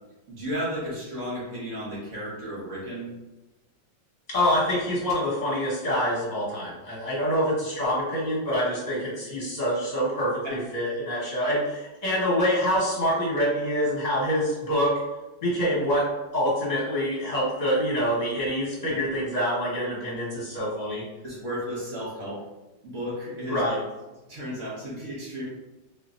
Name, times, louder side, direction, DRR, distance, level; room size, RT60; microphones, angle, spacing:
voice 1, 0.3-3.1 10.4-10.6 18.8-19.0 21.2-22.4 22.8-23.6 24.3-25.4, equal, 45° right, -7 dB, 1.3 m, -33 dB
voice 2, 4.3-15.0 15.4-21.0 23.5-23.8, equal, 25° left, -8 dB, 1.2 m, -26 dB
3.3 x 3.0 x 2.5 m, 1.1 s
omnidirectional pair, 2.0 m